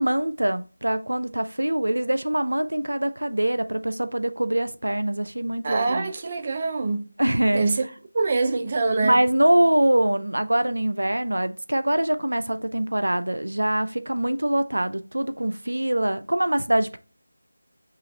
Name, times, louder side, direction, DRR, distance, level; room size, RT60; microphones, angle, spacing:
voice 1, 0.0-6.1 7.2-7.6 9.0-17.0, right 1 dB, 90° right, 0.5 m, -23 dB
voice 2, 5.6-7.1 7.5-7.8 8.1-9.2, right 3 dB, 30° right, 0.5 m, -24 dB
5.6 x 2.5 x 3.8 m
figure-of-eight pair, 170°, 0 cm